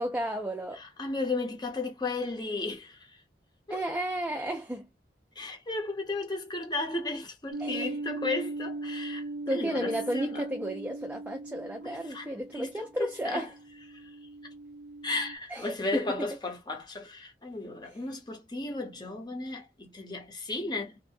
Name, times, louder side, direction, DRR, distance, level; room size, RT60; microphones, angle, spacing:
voice 1, 0.0-0.8 3.7-4.9 7.6-8.0 9.5-13.5 15.5-16.0 17.8-18.0, right 1 dB, 10° right, 0.3 m, -33 dB
voice 2, 0.7-3.2 3.7-3.8 5.4-9.2 9.5-10.4 11.8-12.7 13.2-13.5 14.0-14.1 15.0-21.0, left 2 dB, 25° left, 0.8 m, -34 dB
sound 1, 7.5-15.4, right 2 dB, 75° right, 0.4 m, -39 dB
2.6 x 2.1 x 2.5 m
head